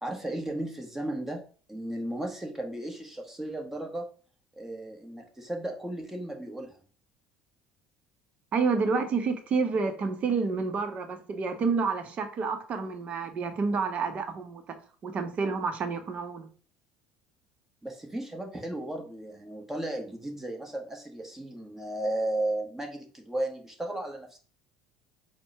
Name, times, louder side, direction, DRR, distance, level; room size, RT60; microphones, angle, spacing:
voice 1, 0.0-1.4 1.7-4.0 4.6-6.7 17.8-24.4, right 1 dB, 10° right, 1.2 m, -35 dB
voice 2, 8.5-16.5, right 4 dB, 45° right, 0.8 m, -29 dB
4.3 x 2.2 x 4.5 m
hypercardioid pair, 70°, 3 cm